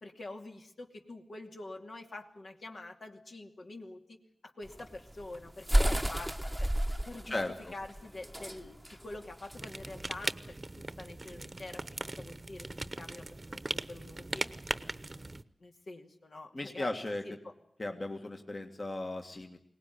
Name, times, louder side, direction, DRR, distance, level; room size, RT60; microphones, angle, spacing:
voice 1, 0.0-4.2 4.4-6.7 7.1-7.4 7.7-11.8 12.2-12.7 13.0-14.4 15.6-17.0 17.2-17.5, left 2 dB, 65° left, 2 dB, 2.6 m, -46 dB
sound 1, 4.6-10.2, equal, 5° right, 1.1 m, -31 dB
voice 2, 7.3-7.7 16.5-17.4 17.8-19.6, left 2 dB, 40° left, 3 dB, 1.9 m, -36 dB
sound 2, 9.5-15.4, right 2 dB, 30° right, 1.0 m, -39 dB
22.5 x 19.0 x 9.5 m, 0.73 s
wide cardioid pair, 75°, 0 cm